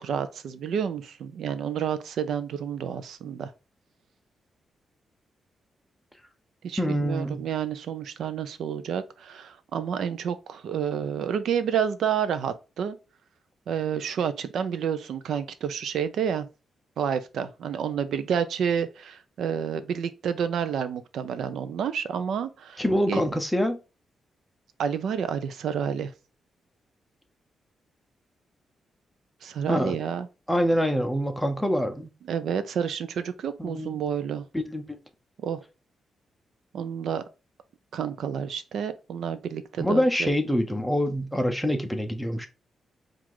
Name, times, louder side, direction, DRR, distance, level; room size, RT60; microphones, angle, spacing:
voice 1, 0.0-3.5 6.6-13.0 13.7-16.5 17.0-23.2 24.8-26.1 29.4-30.3 32.3-34.4 35.4-35.6 36.7-37.2 37.9-40.3, right 8 dB, 70° right, 0.4 m, -29 dB
voice 2, 6.8-7.4 22.8-23.8 29.7-30.0 30.5-32.1 33.6-34.0 34.5-35.0 39.8-42.5, equal, ahead, 0.5 m, -25 dB
4.6 x 2.4 x 3.7 m
wide cardioid pair, 165°, 0 cm